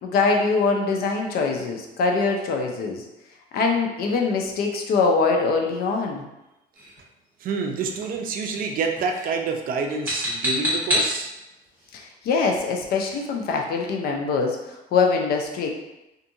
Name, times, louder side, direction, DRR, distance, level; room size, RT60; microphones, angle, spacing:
voice 1, 0.0-3.0 3.5-6.2 11.9-14.6 14.9-15.7, left 4 dB, 65° left, 2 dB, 0.5 m, -23 dB
sound 1, 6.7-7.0 7.8-8.1 8.4-8.7 9.0-9.3 9.9-11.2, equal, 10° right, 1.5 m, -27 dB
voice 2, 7.4-11.3, right 4 dB, 55° right, 4 dB, 0.4 m, -27 dB
2.6 x 2.6 x 2.6 m, 0.93 s
cardioid pair, 110°, 17 cm